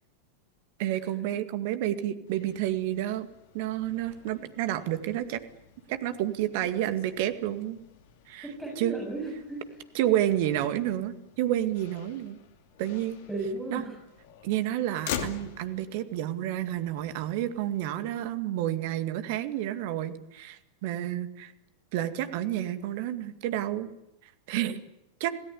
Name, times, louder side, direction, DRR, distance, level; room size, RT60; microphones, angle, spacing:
voice 1, 0.8-3.3 3.5-5.4 5.9-7.8 8.3-8.5 8.8-9.0 9.9-12.4 12.8-13.2 13.7-13.8 14.4-21.5 21.9-23.9 24.5-24.8 25.2-25.4, right 12 dB, 50° right, 10 dB, 2.1 m, -30 dB
Motor vehicle (road), 2.3-18.1, left 8 dB, 50° left, 2.6 m, -45 dB
voice 2, 8.4-9.8 13.3-14.0, right 2 dB, 5° right, -2 dB, 7.5 m, -35 dB
27.0 x 18.0 x 9.8 m, 0.93 s
figure-of-eight pair, 90°, 0 cm